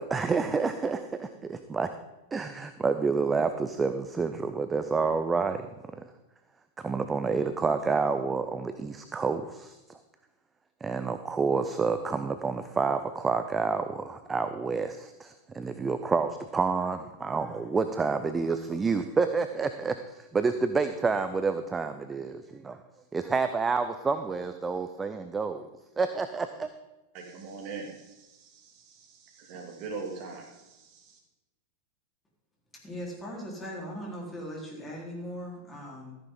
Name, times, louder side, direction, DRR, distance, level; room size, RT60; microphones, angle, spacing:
voice 1, 0.0-1.9 2.3-5.7 5.9-6.1 6.8-10.0 10.8-22.8 23.1-25.7 26.0-26.7, right 4 dB, 15° right, 9 dB, 0.6 m, -29 dB
voice 2, 27.1-31.2, right 4 dB, 45° right, 1 dB, 2.5 m, -42 dB
voice 3, 32.8-36.2, equal, 15° left, -3 dB, 4.1 m, -39 dB
14.0 x 10.0 x 3.9 m, 1.1 s
figure-of-eight pair, 90°, 0 cm